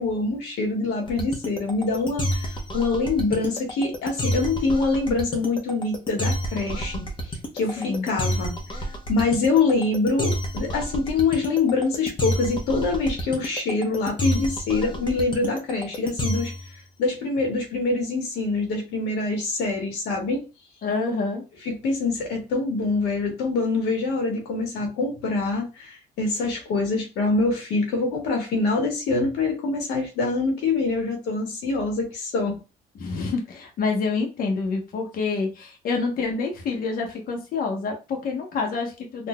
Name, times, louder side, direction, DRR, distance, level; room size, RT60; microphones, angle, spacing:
voice 1, 0.0-7.1 7.5-16.5 17.0-20.4 21.6-32.6, left 3 dB, 85° left, 1 dB, 1.4 m, -25 dB
sound 1, 1.1-16.7, equal, 30° left, 0.8 m, -29 dB
voice 2, 20.8-21.4 32.9-39.3, left 4 dB, 60° left, 2 dB, 1.0 m, -27 dB
4.0 x 2.5 x 2.2 m, 0.31 s
cardioid pair, 110°, 17 cm